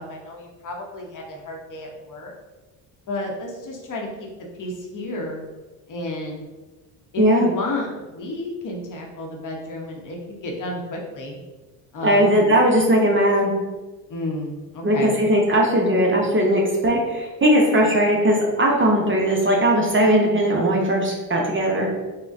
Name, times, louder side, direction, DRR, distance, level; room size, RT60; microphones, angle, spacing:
voice 1, 0.0-2.3 3.1-4.3 4.6-5.4 5.9-6.4 7.1-11.4 11.9-12.5 14.1-15.1, left 1 dB, 40° left, 0 dB, 0.8 m, -32 dB
voice 2, 7.2-7.5 12.0-13.5 14.8-21.9, equal, 25° right, -1 dB, 0.6 m, -18 dB
3.8 x 2.1 x 2.5 m, 1.2 s
supercardioid pair, 70°, 48 cm